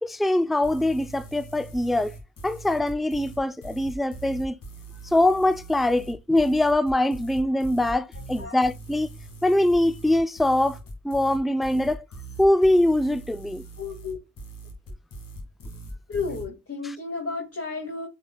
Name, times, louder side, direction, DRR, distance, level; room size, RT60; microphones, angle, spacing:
voice 1, 0.0-2.1 2.4-4.6 5.1-9.1 9.4-10.8 11.0-12.0 12.4-13.6, left 1 dB, ahead, 0.5 m, -23 dB
sound 1, 0.6-16.5, right 3 dB, 80° left, 2.5 m, -41 dB
voice 2, 13.8-14.2 16.1-18.1, left 4 dB, 45° left, 2.2 m, -32 dB
8.1 x 5.4 x 2.3 m
supercardioid pair, 40°, 33 cm